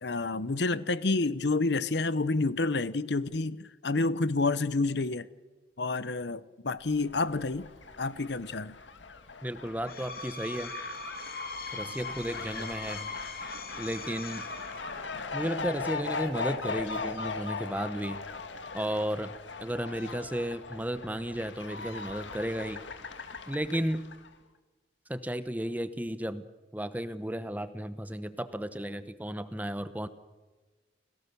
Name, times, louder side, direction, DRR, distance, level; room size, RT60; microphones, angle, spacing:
voice 1, 0.0-5.3 5.8-7.7 8.0-8.7, left 3 dB, 70° left, 0.8 m, -29 dB
Fowl, 6.9-24.3, left 4 dB, 85° left, 1.8 m, -39 dB
voice 2, 9.4-10.7 11.7-13.1 13.8-14.5 15.3-18.2 18.7-19.3 19.6-22.8 23.5-24.1 25.1-26.4 26.7-30.1, equal, 10° right, 0.9 m, -34 dB
Screech, 9.7-15.2, left 3 dB, 50° left, 2.5 m, -40 dB
30.0 x 18.0 x 6.9 m
head